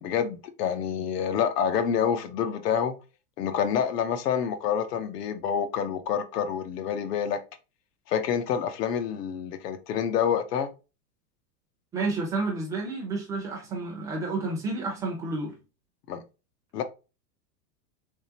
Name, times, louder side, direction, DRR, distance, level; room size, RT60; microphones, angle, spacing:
voice 1, 0.0-2.9 3.4-7.4 8.1-10.7 16.1-16.2 16.7-16.8, left 8 dB, 80° left, 0.9 m, -27 dB
voice 2, 11.9-15.6, right 3 dB, 5° right, 0.5 m, -30 dB
3.6 x 3.1 x 2.8 m
supercardioid pair, 160°, 47 cm